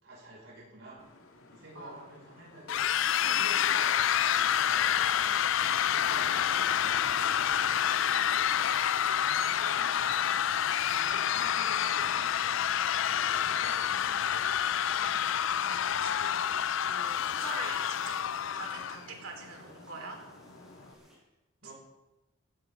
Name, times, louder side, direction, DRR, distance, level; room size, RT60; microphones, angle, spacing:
voice 1, 0.0-1.1 1.5-4.0 4.3-10.5 10.9-14.3 14.9-15.3 20.9-21.2 21.6-21.7, right 1 dB, 65° right, -4 dB, 5.7 m, -51 dB
Traffic noise roadway noise, 1.0-20.9, left 3 dB, 85° left, 2.0 m, -51 dB
sound 1, 2.7-19.0, left 9 dB, 70° left, 0.4 m, -28 dB
voice 2, 9.1-9.7 13.5-13.7 15.4-18.2 18.5-20.2 21.6-21.7, right 3 dB, 85° right, 0 dB, 4.3 m, -45 dB
sound 2, 13.1-21.2, equal, ahead, 6.5 m, -59 dB
20.0 x 15.0 x 3.8 m, 1.0 s
head